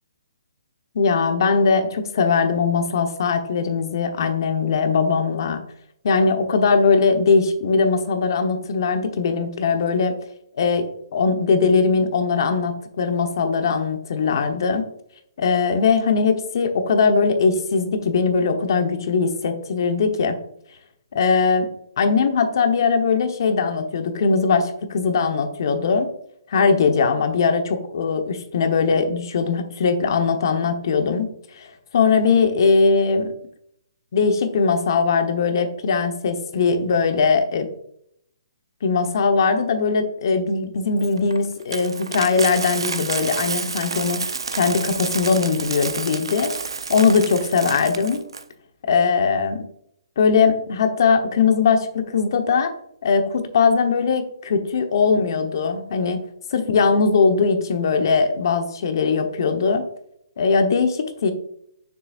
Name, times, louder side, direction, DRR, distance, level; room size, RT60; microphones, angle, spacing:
voice 1, 0.9-5.6 6.0-10.1 10.6-10.8 11.1-14.9 15.4-20.4 21.1-21.7 22.0-26.1 26.5-31.3 31.6-31.7 31.9-33.3 34.1-37.7 38.8-44.2 44.5-46.5 46.9-48.2 48.9-49.6 50.2-52.7 53.0-56.2 56.5-59.8 60.4-61.3, left 5 dB, 55° left, 6 dB, 1.1 m, -20 dB
Coin (dropping), 41.0-48.4, right 5 dB, 75° right, 0.6 m, -29 dB
6.7 x 6.6 x 2.5 m, 0.72 s
hypercardioid pair, 140°, 3 cm